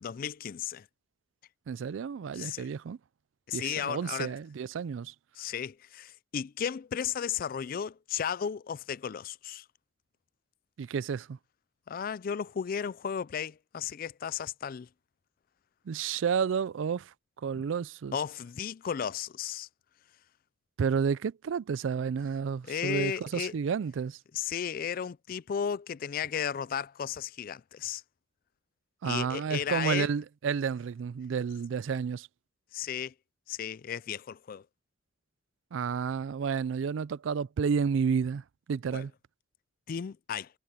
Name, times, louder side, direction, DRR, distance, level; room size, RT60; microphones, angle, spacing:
voice 1, 0.0-0.9 2.3-2.7 3.5-4.4 5.4-9.6 11.9-14.9 17.5-17.6 18.1-19.7 22.6-23.6 24.3-28.0 29.0-30.1 32.7-33.1 33.5-34.6 38.9-39.0 39.9-40.5, left 8 dB, 45° left, 0.3 m, -34 dB
voice 2, 1.7-3.0 3.5-5.1 10.8-11.4 15.9-17.1 17.4-18.2 20.8-24.2 29.0-32.3 35.7-38.4 38.7-39.1, right 6 dB, 80° right, 0.4 m, -31 dB
head